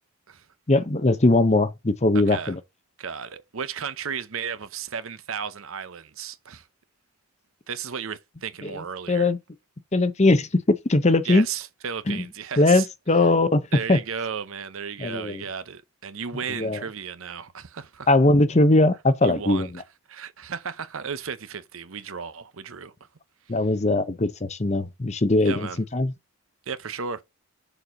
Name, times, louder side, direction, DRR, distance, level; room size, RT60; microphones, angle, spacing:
voice 1, 0.7-2.6 8.6-9.4 9.9-11.5 12.1-12.2 12.6-13.6 13.9-14.0 15.0-15.4 16.6-16.8 18.1-19.7 23.5-26.1, left 2 dB, 30° left, 0.7 m, -20 dB
voice 2, 3.0-6.7 7.7-9.3 11.2-12.9 13.7-18.1 19.2-19.7 20.1-22.9 25.4-25.8 26.7-27.2, right 6 dB, 65° right, 0.7 m, -34 dB
6.9 x 4.2 x 5.2 m
head